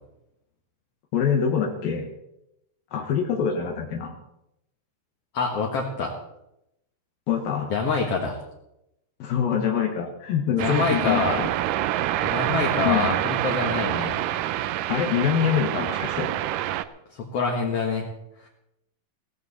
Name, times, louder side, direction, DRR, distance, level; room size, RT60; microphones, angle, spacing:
voice 1, 1.1-2.0 2.9-4.1 7.3-7.7 9.2-11.5 12.8-13.1 14.9-16.3, left 8 dB, 75° left, 2 dB, 3.1 m, -25 dB
voice 2, 5.3-6.1 7.7-8.4 10.6-11.4 12.2-14.2 17.1-18.1 18.4-18.5, left 4 dB, 50° left, 0 dB, 2.1 m, -26 dB
sound 1, 10.6-16.8, right 13 dB, 80° right, 2.0 m, -26 dB
17.0 x 15.0 x 4.3 m, 0.85 s
omnidirectional pair, 4.4 m